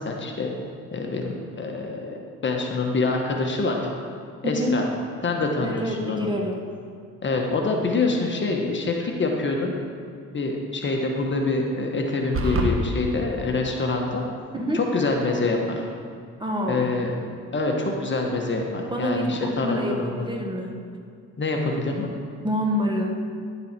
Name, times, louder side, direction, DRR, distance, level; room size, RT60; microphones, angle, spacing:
voice 1, 0.0-0.5 0.9-2.2 2.4-3.8 4.4-4.9 5.2-6.3 7.2-9.7 10.3-14.2 14.7-15.8 16.7-17.1 17.5-20.3 21.4-22.1, left 3 dB, 40° left, 1 dB, 1.4 m, -25 dB
voice 2, 5.6-6.6 14.6-14.8 16.4-16.9 18.9-20.7 22.4-23.2, equal, 15° right, 0 dB, 1.4 m, -27 dB
sound 1, 12.3-12.7, right 2 dB, 45° right, 1.4 m, -23 dB
11.0 x 7.6 x 4.4 m, 2.3 s
cardioid pair, 90°, 30 cm